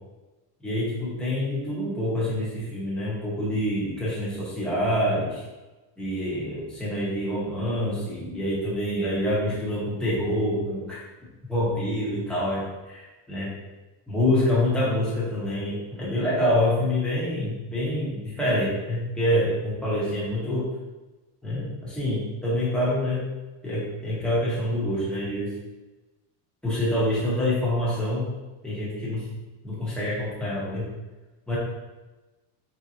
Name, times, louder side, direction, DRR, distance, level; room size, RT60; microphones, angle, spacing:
voice 1, 0.6-5.4 6.0-11.0 11.5-13.5 14.1-20.7 21.4-23.3 23.6-25.5 26.6-28.3 28.6-29.3 29.6-30.9 31.5-31.6, left 1 dB, ahead, -9 dB, 0.9 m, -26 dB
4.3 x 3.6 x 2.7 m, 1.1 s
cardioid pair, 175°, 48 cm